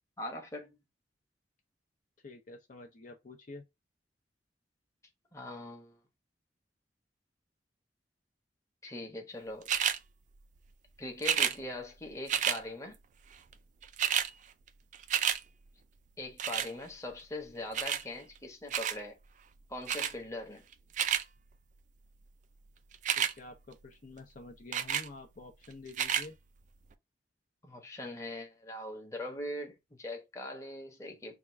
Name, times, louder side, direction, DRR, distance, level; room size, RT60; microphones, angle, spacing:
voice 1, 0.2-0.8 5.3-6.0 8.8-9.7 11.0-13.0 16.2-19.2 19.7-20.6 27.6-31.4, left 1 dB, 15° left, 1.0 m, -41 dB
voice 2, 2.2-3.6 23.2-26.3, left 2 dB, 45° left, 0.6 m, -49 dB
sound 1, 9.7-10.0 11.2-11.6 12.3-12.6 13.5-13.6 13.8-14.3 14.7-15.4 16.4-16.7 17.7-18.0 18.7-19.0 19.9-20.1 20.7-21.2 22.9-23.3 24.7-25.1 25.9-26.3 26.9-27.0, right 9 dB, 45° right, 0.3 m, -30 dB
3.6 x 2.4 x 4.4 m
head